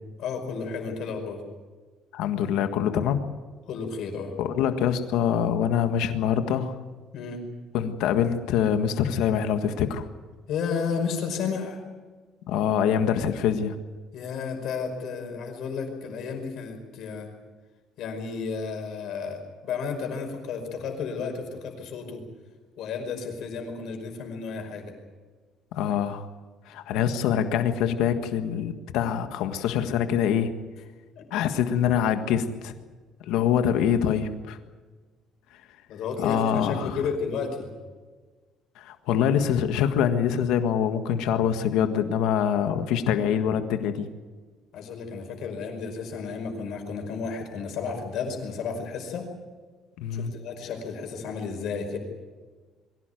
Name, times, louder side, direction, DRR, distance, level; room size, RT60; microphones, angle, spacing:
voice 1, 0.2-1.4 3.7-4.3 7.1-7.4 10.5-11.8 14.1-17.3 18.0-22.2 22.8-24.9 31.2-31.3 35.9-37.7 44.7-49.3 50.1-52.0, left 5 dB, 55° left, 3 dB, 5.2 m, -32 dB
voice 2, 2.1-3.2 4.4-6.8 7.7-10.1 12.5-13.7 25.7-26.3 26.6-30.5 31.3-32.7 33.2-34.6 36.2-37.0 38.7-44.1 50.0-50.3, left 8 dB, 75° left, 7 dB, 1.6 m, -25 dB
23.0 x 16.5 x 9.3 m, 1.4 s
cardioid pair, 180°, 0 cm